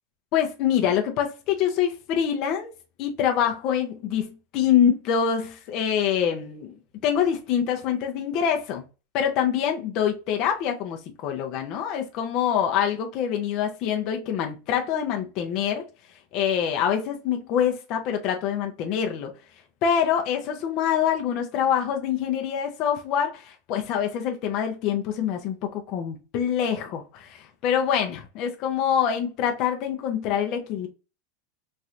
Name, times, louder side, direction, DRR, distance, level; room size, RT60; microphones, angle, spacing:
voice 1, 0.3-2.7 3.0-6.8 7.0-8.8 9.1-15.8 16.3-19.3 19.8-30.9, left 8 dB, 40° left, 0.6 m, -25 dB
3.1 x 2.9 x 2.4 m
supercardioid pair, 165°, 0 cm